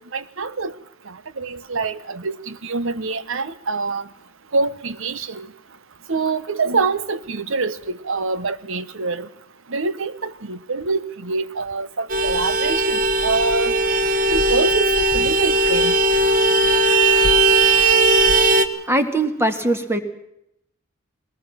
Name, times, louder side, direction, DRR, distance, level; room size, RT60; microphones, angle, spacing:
voice 1, 0.1-0.7 1.1-4.0 4.5-5.5 6.1-9.3 9.7-13.7 14.3-15.9, right 3 dB, 65° right, 14 dB, 1.0 m, -25 dB
Vehicle horn car horn honking, 12.1-18.7, right 2 dB, 45° right, 1.2 m, -17 dB
voice 2, 18.9-20.0, right 1 dB, 10° right, 7 dB, 1.8 m, -21 dB
21.0 x 19.0 x 7.3 m, 0.79 s
head